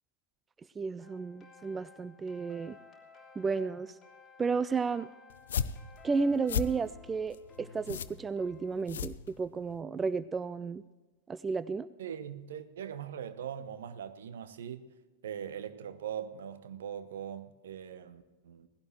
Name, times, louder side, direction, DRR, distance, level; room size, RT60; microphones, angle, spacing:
voice 1, 0.8-2.8 3.4-4.0 4.4-5.1 6.0-10.8 11.3-11.9, right 4 dB, 15° right, 0.4 m, -33 dB
sound 1, 1.0-8.8, left 5 dB, 20° left, 2.9 m, -57 dB
sound 2, 5.3-9.8, left 7 dB, 65° left, 0.5 m, -36 dB
voice 2, 12.0-14.8 15.2-18.7, right 9 dB, 60° right, 1.0 m, -41 dB
18.5 x 16.0 x 3.1 m
figure-of-eight pair, 90°, 0 cm